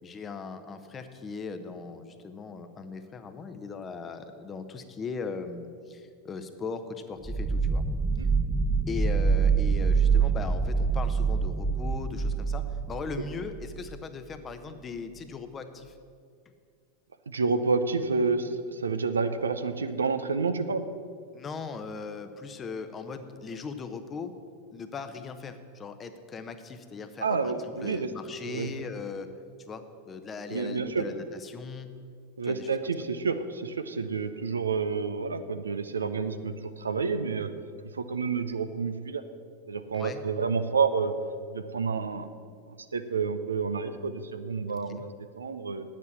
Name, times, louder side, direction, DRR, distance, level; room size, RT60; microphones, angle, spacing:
voice 1, 0.0-7.9 8.9-15.9 21.3-24.3 24.7-29.3 29.7-31.9 32.4-32.7 39.9-40.2 44.7-45.0, left 5 dB, 25° left, 8 dB, 0.9 m, -39 dB
sound 1, 7.3-14.0, right 5 dB, 5° right, 0.3 m, -26 dB
voice 2, 17.3-20.8 27.2-28.1 28.4-28.7 30.5-31.1 32.4-37.5 37.9-39.2 39.7-41.1 41.5-42.3 42.9-45.8, right 4 dB, 80° right, 10 dB, 0.6 m, -29 dB
9.5 x 7.5 x 7.1 m, 2.2 s
figure-of-eight pair, 90°, 0 cm